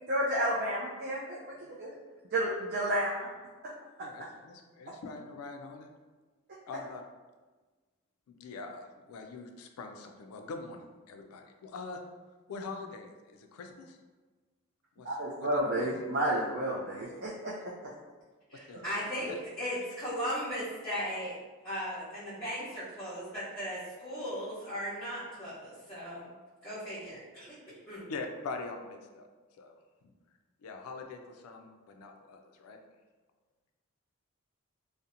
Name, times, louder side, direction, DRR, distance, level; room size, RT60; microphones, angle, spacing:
voice 1, 0.1-1.9 2.3-3.3 3.6-3.7 4.0-4.1 4.9-5.0 15.0-17.9, right 1 dB, 45° right, -6 dB, 0.3 m, -31 dB
voice 2, 4.0-5.9 6.7-7.0 8.3-12.0 12.5-14.0 15.0-15.1 15.4-15.9 18.5-18.8 19.3-19.4 28.1-29.3 29.5-29.8 30.0-30.1 30.6-32.8, left 3 dB, 80° left, 5 dB, 0.3 m, -43 dB
voice 3, 18.5-21.4 21.6-26.3 26.6-27.5 27.9-28.0, equal, 10° left, -15 dB, 0.7 m, -37 dB
2.7 x 2.0 x 2.4 m, 1.3 s
head